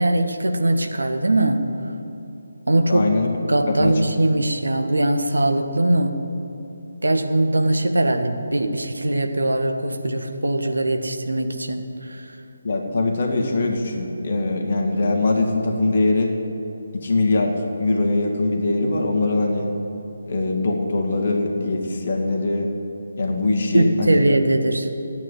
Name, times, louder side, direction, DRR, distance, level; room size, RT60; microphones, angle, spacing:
voice 1, 0.0-1.6 2.7-3.1 3.5-6.2 7.0-12.4 23.7-24.9, right 1 dB, 65° right, 5 dB, 1.6 m, -21 dB
voice 2, 2.9-3.3 3.7-3.9 12.6-16.3 16.9-19.7 20.3-22.7 23.2-24.2, left 2 dB, 40° left, 2 dB, 2.2 m, -22 dB
16.5 x 9.3 x 9.2 m, 2.9 s
figure-of-eight pair, 150°, 0 cm